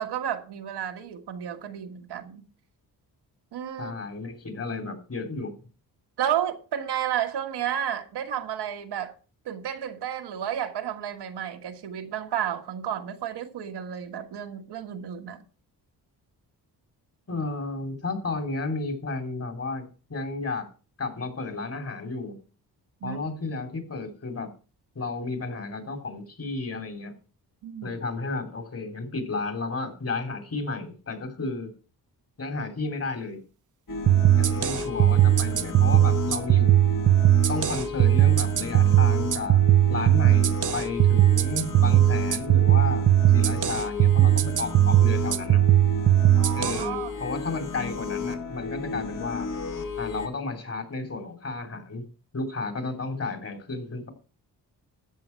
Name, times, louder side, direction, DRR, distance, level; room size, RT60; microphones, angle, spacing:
voice 1, 0.0-2.4 3.5-3.9 6.2-9.1 9.4-15.4 23.0-23.2 27.6-27.9 34.1-34.4 46.4-47.1, right 10 dB, 90° right, 1.7 m, -32 dB
voice 2, 3.8-5.5 17.3-20.7 21.0-22.4 23.0-24.5 24.9-27.1 27.8-31.7 32.4-33.4 34.4-36.7 37.5-39.6 39.9-43.1 43.3-45.6 46.5-49.5 50.0-52.0 52.3-54.1, left 3 dB, 35° left, 3.4 m, -32 dB
sound 1, 33.9-50.3, left 4 dB, 55° left, 2.6 m, -33 dB
sound 2, 34.1-46.8, right 13 dB, 50° right, 0.8 m, -19 dB
13.5 x 8.8 x 4.6 m
cardioid pair, 100°, 39 cm